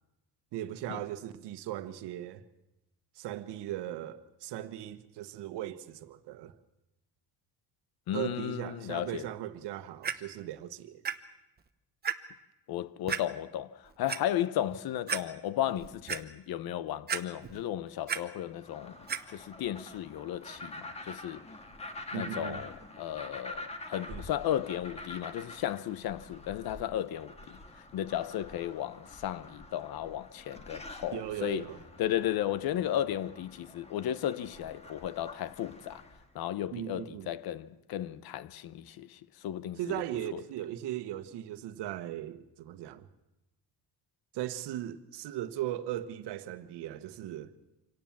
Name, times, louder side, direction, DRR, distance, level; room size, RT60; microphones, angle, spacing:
voice 1, 0.5-2.4 3.2-6.6 8.1-11.0 22.1-22.6 24.1-24.2 31.1-31.8 36.7-37.3 39.8-43.1 44.3-47.6, right 12 dB, 75° right, 1.4 m, -38 dB
voice 2, 8.1-9.3 12.7-19.0 19.3-21.4 22.1-27.6 27.9-31.7 32.0-36.0 36.3-39.8 40.3-40.4, left 11 dB, 60° left, 1.0 m, -34 dB
Clock, 10.0-10.1 11.0-11.1 11.6-11.7 12.0-12.1 13.1-13.2 13.9-14.2 14.7-14.8 15.1-15.2 15.7-16.2 17.1-17.6 17.9-18.2 19.1-19.2 19.9-20.0, right 7 dB, 25° right, 0.9 m, -32 dB
sound 1, 18.5-36.3, left 2 dB, 15° left, 1.6 m, -47 dB
26.0 x 18.0 x 7.3 m
cardioid pair, 170°, 42 cm